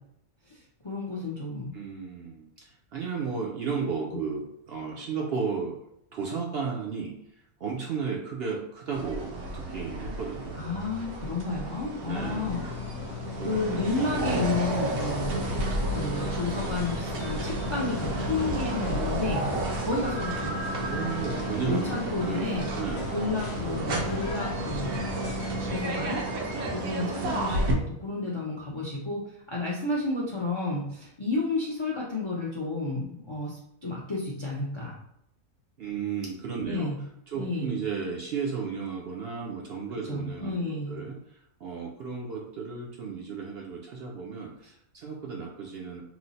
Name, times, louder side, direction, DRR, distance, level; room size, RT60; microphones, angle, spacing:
voice 1, 0.5-1.7 10.5-12.6 13.4-15.4 15.9-19.5 19.8-21.0 21.6-22.7 23.1-25.0 25.7-26.2 26.7-35.0 36.7-37.0 37.3-37.8 40.0-41.0, left 3 dB, 45° left, -4 dB, 0.3 m, -31 dB
voice 2, 1.7-5.8 6.1-7.2 7.6-10.6 12.1-12.7 13.4-14.1 20.8-23.1 35.8-36.9 37.3-41.2 41.6-46.0, right 5 dB, 60° right, -1 dB, 0.6 m, -34 dB
sound 1, 8.9-27.7, right 1 dB, 85° right, 1.2 m, -32 dB
sound 2, 12.1-25.8, left 6 dB, 65° left, 0.7 m, -39 dB
3.1 x 2.0 x 4.0 m, 0.76 s
omnidirectional pair, 1.4 m